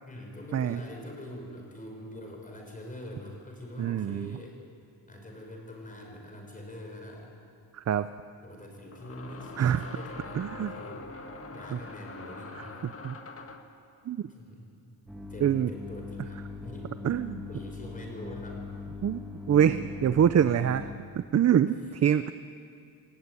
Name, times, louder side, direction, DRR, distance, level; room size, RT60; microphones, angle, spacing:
voice 1, 0.1-4.6 5.1-7.3 8.4-11.1 11.5-12.7 14.3-14.9 15.3-16.9 17.5-18.6 21.6-21.9, left 1 dB, 20° left, 1 dB, 5.6 m, -44 dB
voice 2, 3.8-4.3 7.7-8.1 9.6-9.8 10.4-10.7 11.7-11.8 13.0-13.1 14.1-14.2 15.4-15.7 17.0-17.4 19.0-19.2 19.5-20.9 21.3-21.7 22.0-22.3, right 9 dB, 45° right, 12 dB, 0.6 m, -24 dB
sound 1, 8.9-13.8, left 3 dB, 35° left, 1.7 m, -43 dB
sound 2, 15.1-21.0, left 4 dB, ahead, 2.3 m, -41 dB
28.0 x 18.0 x 9.7 m, 2.4 s
wide cardioid pair, 170°, 38 cm